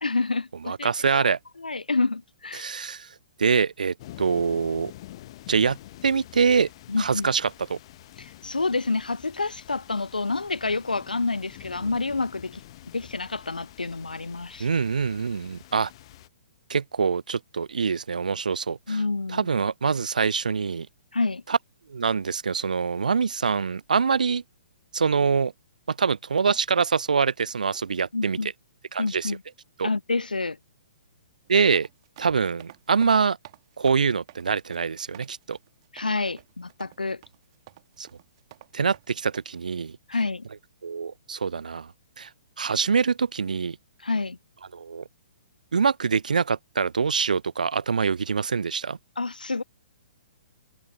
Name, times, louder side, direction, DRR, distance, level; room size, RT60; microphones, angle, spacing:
voice 1, 0.0-0.9 1.6-2.6 6.9-7.3 8.2-12.6 12.9-14.7 18.9-19.5 21.1-21.4 28.1-28.5 29.0-29.4 29.8-30.6 35.9-37.2 40.1-40.5 44.0-44.4 49.2-49.6, left 3 dB, 75° left, 0.4 m, -28 dB
voice 2, 0.6-1.4 2.5-3.1 3.4-4.9 5.5-5.8 6.0-6.7 7.0-7.8 14.6-15.9 16.7-19.0 19.3-20.9 21.5-21.6 21.9-24.4 24.9-25.5 25.9-28.4 28.9-29.3 29.8-29.9 31.5-31.9 32.2-33.4 33.8-35.6 38.0-38.1 38.7-40.0 40.8-41.9 42.2-42.3 42.6-43.8 44.7-45.0 45.7-49.0, right 5 dB, 65° right, 0.4 m, -24 dB
sound 1, 4.0-16.3, left 15 dB, 40° left, 0.8 m, -47 dB
sound 2, 31.5-39.4, right 15 dB, 40° right, 2.0 m, -50 dB
figure-of-eight pair, 120°, 5 cm